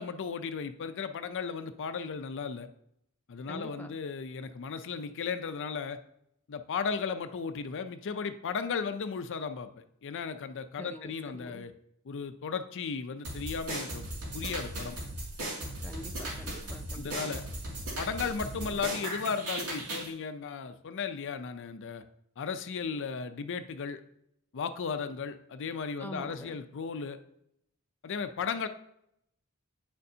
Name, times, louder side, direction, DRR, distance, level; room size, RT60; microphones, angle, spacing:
voice 1, 0.0-2.7 3.3-6.0 6.5-11.7 12.1-14.1 14.3-15.0 16.9-17.4 18.0-22.0 22.4-24.0 24.5-27.2 28.0-28.7, left 5 dB, 55° left, 10 dB, 0.5 m, -35 dB
voice 2, 3.5-3.9 10.8-11.7 15.8-17.4 26.0-26.6, equal, 10° left, 4 dB, 0.5 m, -45 dB
sound 1, 13.2-20.1, right 1 dB, 80° right, 2.4 m, -37 dB
9.5 x 6.6 x 2.7 m, 0.75 s
head